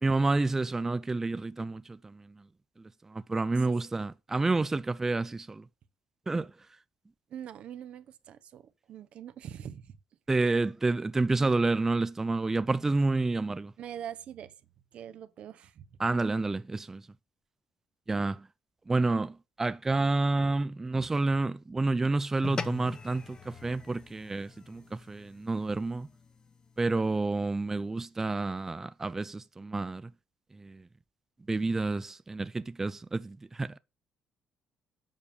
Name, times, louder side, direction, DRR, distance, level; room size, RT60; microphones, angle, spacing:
voice 1, 0.0-2.3 3.0-5.7 6.3-6.5 10.3-13.7 16.0-17.1 18.1-18.5 18.9-26.1 26.8-30.1 30.5-30.9 31.5-33.8, right 3 dB, 20° right, 0.4 m, -29 dB
voice 2, 7.3-10.0 13.8-14.5 14.9-15.9, right 9 dB, 65° right, 0.8 m, -43 dB
sound 1, 22.4-27.1, left 5 dB, 35° left, 1.0 m, -43 dB
7.2 x 5.1 x 6.9 m
cardioid pair, 85°, 2 cm